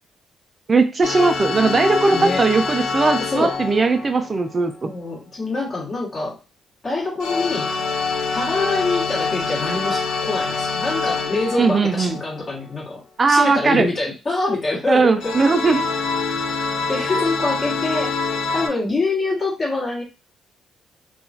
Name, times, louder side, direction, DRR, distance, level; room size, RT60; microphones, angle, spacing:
voice 1, 0.7-4.9 11.6-12.2 13.2-13.9 14.9-15.8, right 3 dB, 35° right, 7 dB, 0.3 m, -18 dB
sound 1, 1.0-4.8 7.2-12.6 15.2-18.7, left 4 dB, 75° left, 0.8 m, -25 dB
voice 2, 2.1-2.4 3.3-3.5 4.8-6.4 6.8-7.8 8.3-13.0 13.3-15.3 16.9-18.1 18.5-20.0, left 3 dB, 40° left, -5 dB, 1.6 m, -25 dB
2.8 x 2.3 x 2.6 m, 0.31 s
cardioid pair, 90°, 0 cm